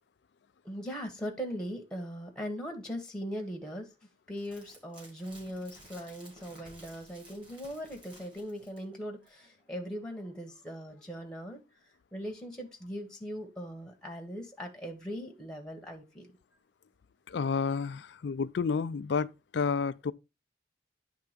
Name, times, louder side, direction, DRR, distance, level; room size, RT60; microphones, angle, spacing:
voice 1, 0.6-3.9 4.3-11.6 12.1-16.3, equal, 5° left, 1.3 m, -40 dB
sound 1, 4.4-9.0 9.3-9.4, right 1 dB, 30° right, 3.4 m, -55 dB
voice 2, 17.3-20.1, left 5 dB, 70° left, 0.4 m, -30 dB
9.5 x 3.5 x 5.1 m
head